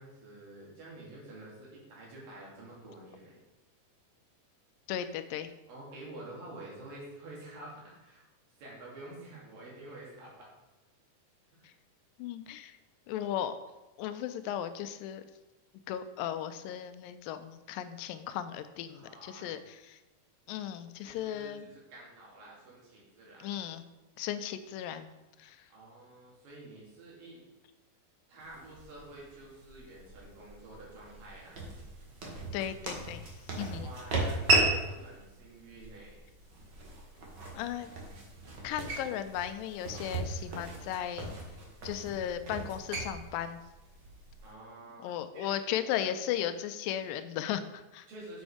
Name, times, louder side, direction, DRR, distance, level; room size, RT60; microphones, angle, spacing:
voice 1, 0.0-3.4 5.7-8.2 8.6-10.5 11.6-11.7 18.9-19.5 21.0-23.7 25.7-27.4 28.3-31.6 33.8-36.2 44.4-45.5 45.9-46.1 48.1-48.4, right 2 dB, 80° right, -4 dB, 4.1 m, -49 dB
voice 2, 4.9-5.5 11.6-11.7 12.2-12.8 13.1-13.6 14.0-15.2 15.9-20.0 20.5-21.7 23.4-23.8 24.2-25.1 25.4-25.6 32.5-33.2 33.5-33.9 37.5-37.9 38.6-41.3 41.8-43.6 45.0-48.1, left 10 dB, 90° left, 10 dB, 2.3 m, -36 dB
sound 1, 28.4-44.5, right 2 dB, 50° right, 1.4 m, -36 dB
7.9 x 5.2 x 4.9 m, 1.0 s
omnidirectional pair, 3.9 m